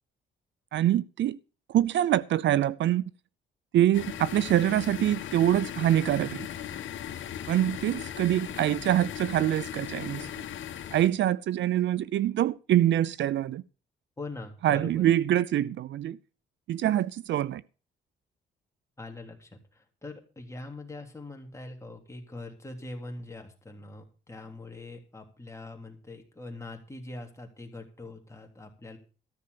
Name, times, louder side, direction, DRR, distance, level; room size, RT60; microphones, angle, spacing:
voice 1, 0.7-1.4 1.7-3.0 3.7-6.5 7.5-10.3 10.9-13.6 14.6-16.2 16.7-17.6, right 12 dB, 65° right, 0.6 m, -25 dB
sound 1, 3.9-11.1, left 10 dB, 75° left, 1.7 m, -38 dB
voice 2, 14.2-15.0 19.0-29.0, left 2 dB, 15° left, 3.2 m, -43 dB
13.5 x 6.8 x 6.8 m
cardioid pair, 90°, 20 cm